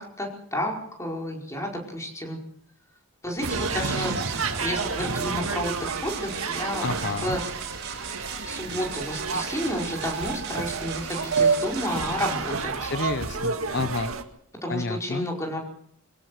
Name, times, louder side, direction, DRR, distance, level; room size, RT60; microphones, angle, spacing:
voice 1, 0.0-2.4 3.2-4.1 4.6-6.9 7.2-7.4 8.5-12.9 14.6-15.6, equal, 15° left, 0 dB, 5.0 m, -31 dB
sound 1, 3.4-12.6, right 8 dB, 55° right, 4.6 m, -38 dB
sound 2, 3.4-14.2, right 4 dB, 80° right, 2.1 m, -30 dB
voice 2, 6.8-7.4 12.8-14.2 14.7-15.3, left 3 dB, 55° left, 11 dB, 0.9 m, -30 dB
24.0 x 16.5 x 6.7 m, 0.66 s
head